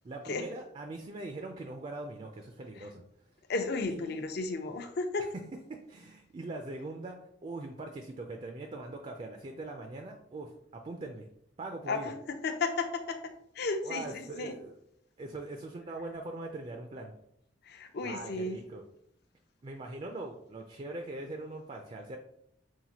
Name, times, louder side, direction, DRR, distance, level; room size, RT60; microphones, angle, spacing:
voice 1, 0.0-3.0 3.9-4.2 5.2-5.4 5.7-11.3 11.6-12.1 13.8-14.7 15.2-17.1 18.0-18.8 19.6-22.2, right 2 dB, 30° right, 4 dB, 0.3 m, -41 dB
voice 2, 3.5-5.2 11.9-12.1 12.4-13.2 13.6-14.5 17.7-18.6, left 3 dB, 55° left, 7 dB, 0.5 m, -33 dB
5.6 x 2.5 x 2.8 m, 0.74 s
head